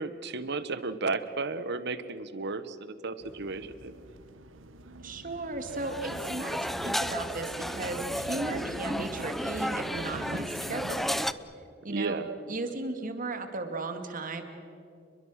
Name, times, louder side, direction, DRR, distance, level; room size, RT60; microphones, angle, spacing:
voice 1, 0.0-3.9 11.9-12.3, right 3 dB, 60° right, 13 dB, 1.2 m, -33 dB
sound 1, 3.2-11.3, right 2 dB, 85° right, 1.1 m, -44 dB
voice 2, 5.0-6.6 6.8-11.3 11.8-12.2 12.5-14.4, right 3 dB, 45° right, 6 dB, 2.3 m, -36 dB
sound 2, 5.7-11.3, equal, ahead, 0.5 m, -33 dB
29.5 x 22.5 x 6.4 m, 2.5 s
head